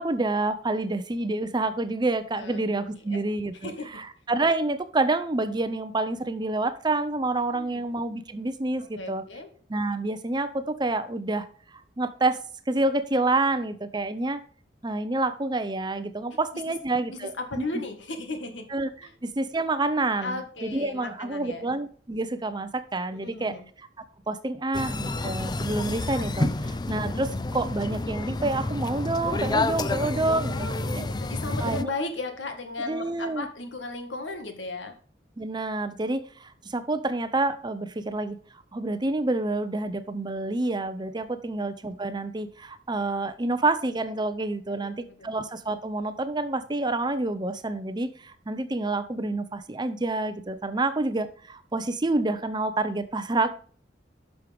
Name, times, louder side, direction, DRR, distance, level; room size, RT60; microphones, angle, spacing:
voice 1, 0.0-9.2 9.7-11.5 11.7-12.4 12.7-14.4 14.8-17.3 18.7-23.9 24.3-30.7 31.6-31.9 32.8-33.5 35.4-38.4 38.7-53.5, right 2 dB, 25° right, 11 dB, 0.6 m, -28 dB
voice 2, 7.5-7.8 8.9-9.5 16.3-16.4 16.7-16.8 17.1-18.7 19.0-19.1 20.2-21.7 23.1-23.6 26.6-26.8 29.9-34.9 41.4-41.5 44.7-45.3, left 2 dB, 85° left, 6 dB, 1.7 m, -36 dB
sound 1, 24.7-31.8, left 2 dB, 25° left, 0.5 m, -29 dB
10.5 x 6.3 x 3.5 m, 0.43 s
head